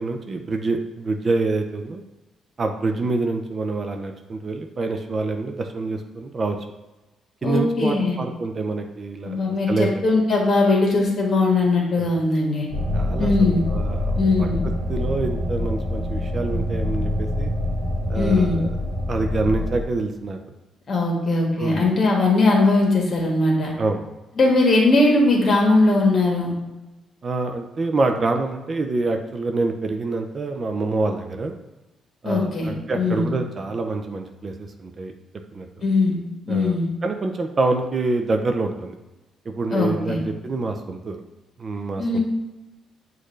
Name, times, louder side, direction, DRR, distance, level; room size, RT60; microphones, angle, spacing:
voice 1, 0.0-2.0 2.6-6.6 7.4-9.4 9.7-10.0 11.9-12.1 12.9-14.5 14.9-17.5 18.1-18.7 19.1-20.4 21.6-21.8 23.8-24.0 27.2-31.5 32.2-35.1 35.5-35.7 36.5-36.7 37.0-38.9 39.5-41.2 41.6-42.2, right 3 dB, 40° right, 5 dB, 0.5 m, -26 dB
voice 2, 7.4-8.2 9.2-12.7 13.2-13.6 14.1-14.6 18.1-18.6 20.9-23.7 24.4-26.5 32.2-33.3 35.8-36.2 36.4-36.9 39.7-40.2 42.0-42.2, left 2 dB, 45° left, -1 dB, 1.4 m, -20 dB
sound 1, 12.7-19.8, left 1 dB, 60° right, 1.1 m, -25 dB
6.4 x 2.6 x 3.1 m, 1.1 s
cardioid pair, 90°, 0 cm